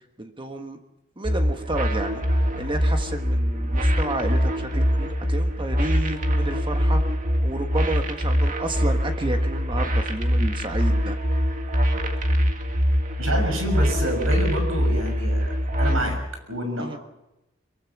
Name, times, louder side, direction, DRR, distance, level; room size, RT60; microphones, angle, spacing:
voice 1, 0.2-0.8 1.2-2.2 2.6-7.0 7.4-11.2 16.8-17.0, right 2 dB, 25° right, 6 dB, 1.4 m, -31 dB
sound 1, 1.2-16.0, equal, 40° right, 1.9 m, -23 dB
voice 2, 13.2-16.2 16.5-17.0, equal, 85° right, 5 dB, 6.5 m, -28 dB
23.5 x 22.5 x 6.0 m, 0.93 s
head